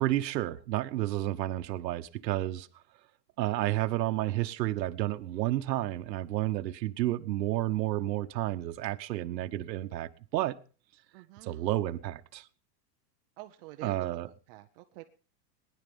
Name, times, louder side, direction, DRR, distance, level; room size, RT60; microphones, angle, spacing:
voice 1, 0.0-2.7 3.4-10.6 11.4-12.5 13.8-14.3, right 15 dB, 85° right, 1.1 m, -31 dB
voice 2, 11.1-11.7 13.4-15.0, right 16 dB, 35° right, 0.8 m, -49 dB
19.5 x 10.5 x 5.3 m
supercardioid pair, 165°, 49 cm